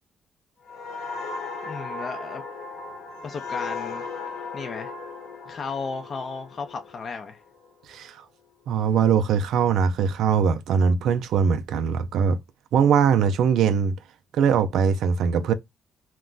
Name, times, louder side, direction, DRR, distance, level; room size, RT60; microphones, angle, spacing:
sound 1, 0.7-8.1 8.5-8.8, left 4 dB, 80° left, 1.0 m, -36 dB
voice 1, 1.6-2.4 3.2-4.1 4.5-4.9 5.5-7.4, left 4 dB, 45° left, 0.4 m, -34 dB
voice 2, 8.7-12.4 12.7-13.9 14.3-15.5, right 6 dB, 80° right, 0.3 m, -21 dB
2.4 x 2.1 x 3.6 m
cardioid pair, 90°, 0 cm